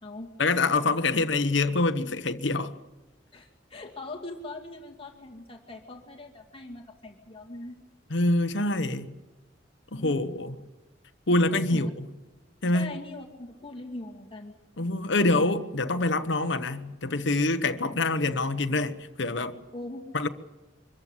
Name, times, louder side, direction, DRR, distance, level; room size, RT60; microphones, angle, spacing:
voice 1, 0.4-2.7 8.1-9.1 9.9-10.6 11.3-11.9 12.6-12.9 14.8-19.6 20.1-20.3, left 2 dB, 80° left, 1.1 m, -25 dB
voice 2, 3.3-7.8 10.0-10.2 11.5-11.9 12.7-14.5 19.7-20.0, left 2 dB, 30° left, 2.3 m, -41 dB
25.0 x 14.5 x 9.8 m
head